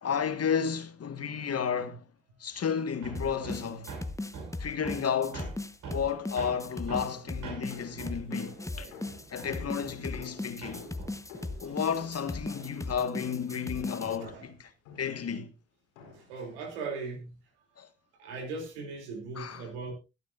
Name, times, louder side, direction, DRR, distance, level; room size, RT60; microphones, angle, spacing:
voice 1, 0.0-2.0 2.4-3.9 4.6-5.5 5.9-8.9 9.3-10.9 11.6-14.7 15.0-15.5 17.8-17.9 19.3-19.7, left 7 dB, 45° left, 1.6 m, -32 dB
Hammer, 3.0-10.4 10.6-12.4, right 4 dB, 65° right, 5.8 m, -44 dB
sound 1, 3.2-14.2, left 2 dB, 10° left, 1.1 m, -38 dB
sound 2, 7.7-14.4 14.9-15.3 16.0-16.4, left 4 dB, 85° left, 4.0 m, -51 dB
voice 2, 16.1-17.3 18.2-19.9, right 4 dB, 85° right, 2.8 m, -39 dB
21.0 x 9.3 x 2.5 m
hypercardioid pair, 40°, 33 cm